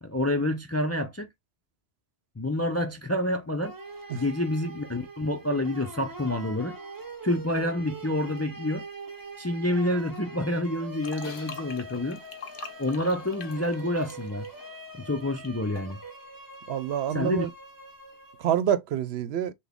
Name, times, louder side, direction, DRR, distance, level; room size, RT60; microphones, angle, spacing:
voice 1, 0.0-1.3 2.4-3.7 4.1-6.7 7.2-8.9 9.4-12.2 12.8-14.5 15.0-16.0 17.1-17.5, left 1 dB, 20° left, 0.4 m, -28 dB
sound 1, 3.6-18.7, right 2 dB, 20° right, 0.7 m, -43 dB
sound 2, 11.0-15.5 15.8-15.9, left 4 dB, 55° left, 1.0 m, -44 dB
voice 2, 16.7-17.5 18.4-19.5, right 9 dB, 75° right, 0.8 m, -27 dB
5.9 x 2.2 x 3.5 m
omnidirectional pair, 1.1 m